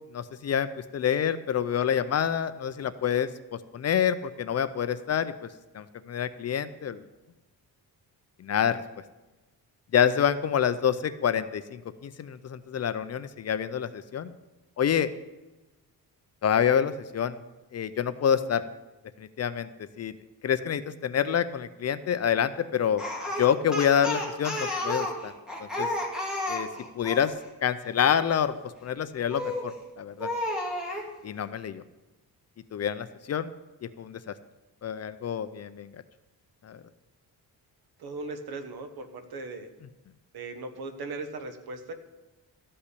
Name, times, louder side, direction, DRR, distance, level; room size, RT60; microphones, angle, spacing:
voice 1, 0.1-0.7 0.9-5.3 5.7-7.0 8.4-8.8 9.9-14.3 14.8-15.1 16.4-17.4 17.7-18.6 19.2-19.7 20.0-20.1 20.4-23.0 23.4-25.3 25.6-25.9 26.5-26.7 27.0-27.3 27.6-28.5 28.8-30.3 31.2-31.8 32.7-33.5 33.8-34.3 34.8-35.9 36.6-36.8, left 8 dB, 40° left, 13 dB, 0.4 m, -27 dB
Speech, 23.0-27.3 29.3-29.7 30.2-31.1, left 1 dB, ahead, 1.9 m, -31 dB
voice 2, 38.0-39.7 40.3-41.9, right 3 dB, 70° right, 7 dB, 1.4 m, -38 dB
13.5 x 5.5 x 8.3 m, 1.1 s
wide cardioid pair, 170°, 39 cm